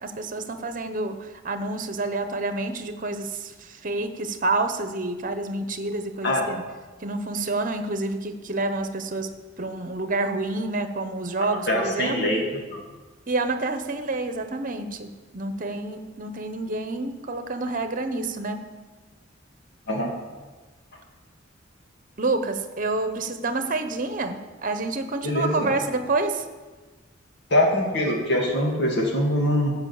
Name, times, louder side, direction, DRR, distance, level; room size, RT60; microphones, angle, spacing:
voice 1, 0.0-6.6 7.0-12.3 13.3-18.7 22.2-26.4, right 2 dB, 45° right, 8 dB, 1.0 m, -28 dB
voice 2, 11.7-12.4 12.7-12.8 19.9-20.1 25.2-25.7 27.5-29.7, left 1 dB, 60° left, 0 dB, 2.7 m, -23 dB
14.0 x 5.7 x 7.2 m, 1.3 s
head